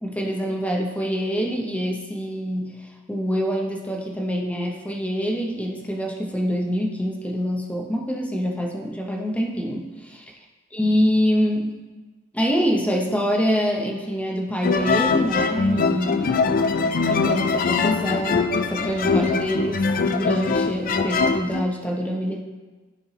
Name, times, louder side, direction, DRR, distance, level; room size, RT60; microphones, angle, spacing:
voice 1, 0.0-2.8 3.1-10.2 10.7-11.7 12.3-16.5 17.1-22.4, equal, 5° left, 0 dB, 0.8 m, -25 dB
sound 1, 14.6-21.6, left 4 dB, 40° left, 0.4 m, -22 dB
13.0 x 4.5 x 2.8 m, 1.3 s
head